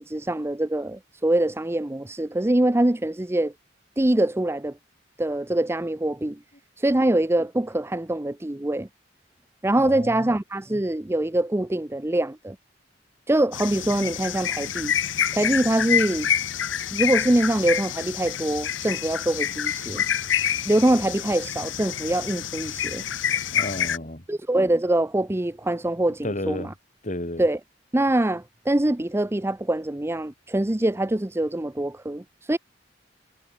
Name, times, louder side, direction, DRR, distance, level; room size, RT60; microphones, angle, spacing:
voice 1, 0.0-3.5 4.0-4.8 5.2-6.4 6.8-8.9 9.6-12.6 13.3-14.9 15.3-16.3 16.9-20.0 20.7-23.0 24.3-26.7 27.4-27.6 27.9-32.6, right 1 dB, 15° right, 0.6 m, -24 dB
voice 2, 9.8-10.3 23.5-24.2 26.2-26.7 27.0-27.4, left 1 dB, 40° left, 3.5 m, -32 dB
sound 1, 13.5-24.0, left 9 dB, 90° left, 1.0 m, -27 dB
head